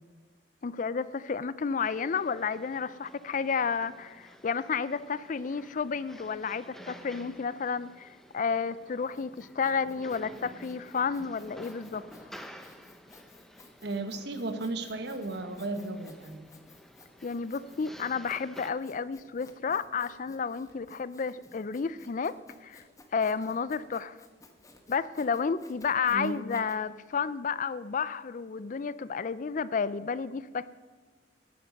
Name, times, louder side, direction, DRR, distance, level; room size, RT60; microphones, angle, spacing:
voice 1, 0.6-12.1 17.2-22.3 22.6-22.8 23.1-24.2 24.9-30.7, left 5 dB, 45° left, 17 dB, 0.4 m, -31 dB
sound 1, 1.8-18.7, equal, ahead, 0.8 m, -51 dB
Sawing, 8.7-26.8, left 2 dB, 20° left, 1.3 m, -57 dB
voice 2, 13.8-16.5 26.1-26.4, right 2 dB, 65° right, 8 dB, 1.3 m, -35 dB
14.5 x 12.0 x 5.3 m, 1.4 s
head